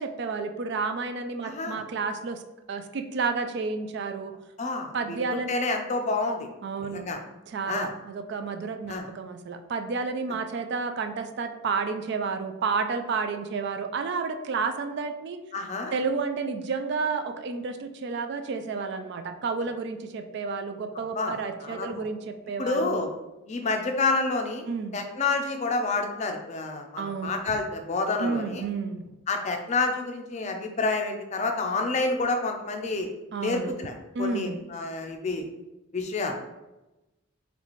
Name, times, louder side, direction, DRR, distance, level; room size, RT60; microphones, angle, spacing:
voice 1, 0.0-2.4 2.7-4.4 4.9-5.7 6.6-7.1 7.5-15.4 15.9-23.0 24.7-25.0 27.0-27.3 28.2-29.0 33.3-33.7 34.1-34.6, right 4 dB, 50° right, 7 dB, 0.3 m, -31 dB
voice 2, 1.4-1.8 4.6-6.5 6.9-7.2 7.7-7.9 8.9-9.0 15.5-15.9 21.2-21.3 21.6-22.0 22.6-23.1 23.5-24.7 24.9-28.6 29.3-33.1 33.4-35.5 35.9-36.5, left 3 dB, 35° left, 4 dB, 0.4 m, -29 dB
4.0 x 3.2 x 3.0 m, 1.0 s
head